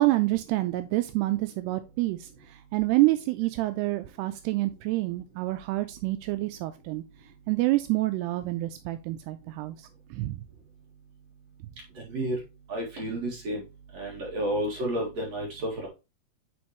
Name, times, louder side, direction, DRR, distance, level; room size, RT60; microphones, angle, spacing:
voice 1, 0.0-7.0 7.5-10.4, right 18 dB, 85° right, 9 dB, 2.5 m, -27 dB
voice 2, 12.0-12.4 12.7-13.6 13.9-15.9, right 1 dB, 50° right, -2 dB, 2.5 m, -31 dB
9.4 x 4.3 x 2.9 m, 0.26 s
omnidirectional pair, 4.9 m